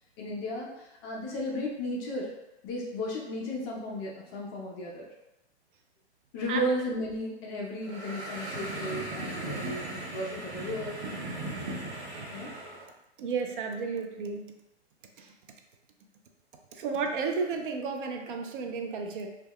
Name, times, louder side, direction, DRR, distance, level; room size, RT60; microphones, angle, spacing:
voice 1, 0.2-2.3 2.6-5.1 6.3-11.0 12.3-12.5, left 1 dB, 25° left, -2 dB, 0.4 m, -34 dB
sound 1, 7.8-12.8, right 2 dB, 75° right, 0.9 m, -37 dB
voice 2, 13.2-14.4 15.2-15.3 16.7-19.3, right 5 dB, 50° right, 3 dB, 0.4 m, -32 dB
2.2 x 2.1 x 3.4 m, 0.93 s
hypercardioid pair, 120°, 33 cm